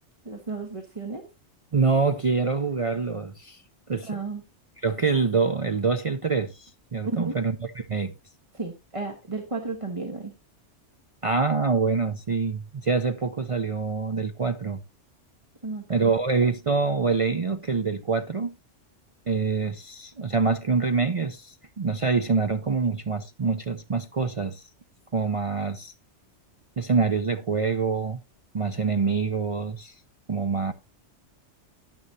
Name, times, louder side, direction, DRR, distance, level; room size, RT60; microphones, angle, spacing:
voice 1, 0.2-1.2 4.0-4.4 7.0-7.4 8.5-10.3 15.6-16.1, right 3 dB, 30° right, 1.3 m, -33 dB
voice 2, 1.7-3.6 3.9-4.1 4.8-8.1 11.2-14.8 15.9-18.5 19.3-24.6 25.1-25.9 26.8-28.2 28.5-29.9 30.3-30.7, right 4 dB, 45° right, 0.4 m, -25 dB
10.5 x 9.7 x 2.7 m
omnidirectional pair, 1.2 m